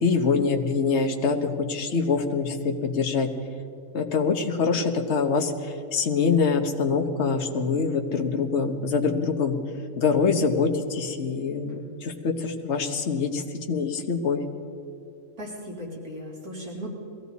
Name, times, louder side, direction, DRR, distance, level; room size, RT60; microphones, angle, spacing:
voice 1, 0.0-3.3 3.9-9.6 10.0-14.4, left 5 dB, 50° left, 4 dB, 1.4 m, -25 dB
voice 2, 15.4-16.9, equal, 85° right, -4 dB, 3.7 m, -37 dB
22.0 x 16.0 x 4.1 m, 2.5 s
omnidirectional pair, 1.5 m